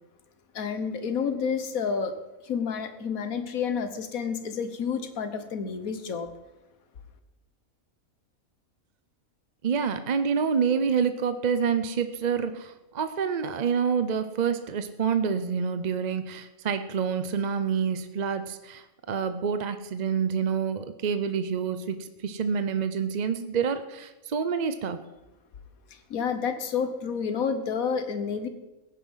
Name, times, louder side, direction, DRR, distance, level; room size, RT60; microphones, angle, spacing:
voice 1, 0.6-2.2 2.4-6.3 26.1-28.5, left 6 dB, 75° left, 9 dB, 1.6 m, -29 dB
voice 2, 9.6-25.0, right 6 dB, 45° right, 10 dB, 0.6 m, -27 dB
16.5 x 9.9 x 5.6 m, 1.1 s
omnidirectional pair, 1.5 m